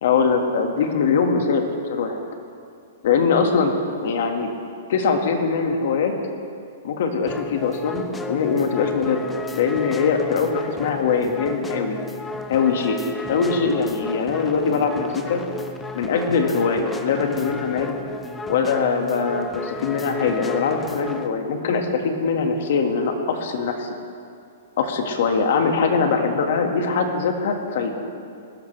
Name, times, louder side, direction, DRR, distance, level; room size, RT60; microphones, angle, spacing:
voice 1, 0.0-2.2 3.0-4.5 4.9-6.1 6.8-12.0 12.5-13.0 13.3-15.4 15.9-18.0 18.5-23.9 24.8-28.0, left 5 dB, 60° left, 4 dB, 1.9 m, -22 dB
sound 1, 7.3-21.3, left 2 dB, 10° left, 0.7 m, -34 dB
20.0 x 13.0 x 3.4 m, 2.4 s
hypercardioid pair, 140°, 0 cm